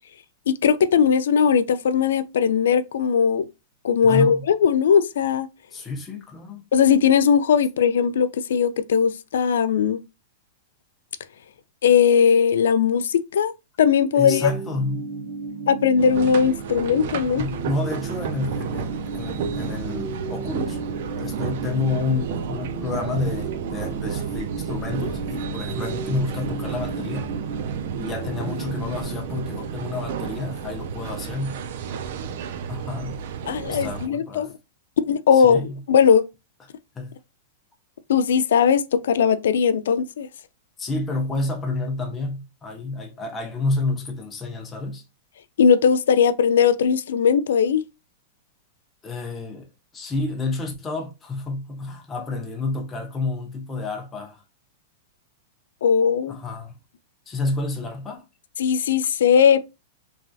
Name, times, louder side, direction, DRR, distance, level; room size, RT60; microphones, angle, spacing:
voice 1, 0.5-3.5 3.8-5.5 6.7-10.0 11.8-13.5 13.8-14.5 15.7-17.4 33.5-34.5 35.0-35.6 35.9-36.3 38.1-40.3 45.6-47.8 55.8-56.4 58.6-59.6, left 7 dB, 80° left, 0.3 m, -19 dB
voice 2, 4.0-4.4 5.7-6.6 14.2-15.1 17.4-20.8 21.2-27.3 27.9-31.6 32.7-33.2 33.7-34.5 35.3-35.8 37.0-37.1 40.8-45.0 49.0-49.7 49.9-54.4 56.3-56.7 57.3-58.2, left 3 dB, 10° left, 0.5 m, -29 dB
sound 1, 14.2-29.0, right 4 dB, 85° right, 0.8 m, -34 dB
sound 2, 16.0-34.1, right 7 dB, 50° right, 0.3 m, -32 dB
3.1 x 2.3 x 2.5 m
supercardioid pair, 170°, 0 cm